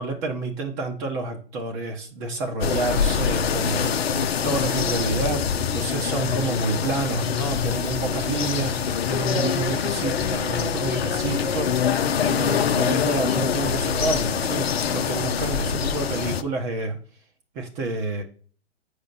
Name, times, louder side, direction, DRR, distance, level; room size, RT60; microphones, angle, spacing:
voice 1, 0.0-17.0 17.5-18.2, right 3 dB, 25° right, 1 dB, 1.2 m, -29 dB
sound 1, 2.6-16.4, left 7 dB, 60° left, 0.8 m, -24 dB
8.2 x 5.3 x 4.2 m, 0.44 s
figure-of-eight pair, 125°, 34 cm